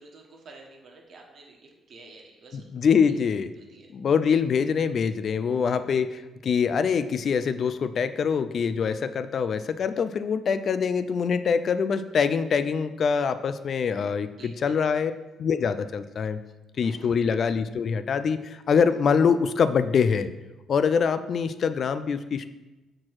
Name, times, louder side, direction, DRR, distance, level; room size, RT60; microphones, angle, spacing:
voice 1, 0.0-2.7 3.6-3.9 14.3-14.9 16.8-17.1, right 3 dB, 60° right, 1 dB, 1.3 m, -50 dB
voice 2, 2.5-3.5 3.9-15.1 15.4-16.4 16.8-20.3 20.7-22.5, left 6 dB, 55° left, 12 dB, 0.3 m, -24 dB
5.8 x 4.3 x 4.7 m, 1.1 s
cardioid pair, 90°, 0 cm